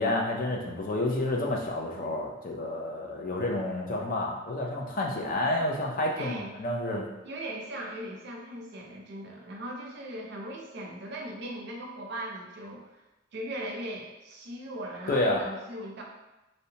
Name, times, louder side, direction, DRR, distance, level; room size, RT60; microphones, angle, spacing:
voice 1, 0.0-7.1 15.1-15.4, left 1 dB, 45° left, 0 dB, 0.4 m, -29 dB
voice 2, 6.2-6.6 7.2-13.0 13.3-16.0, right 1 dB, 55° right, -1 dB, 0.5 m, -39 dB
2.7 x 2.1 x 2.7 m, 1.0 s
head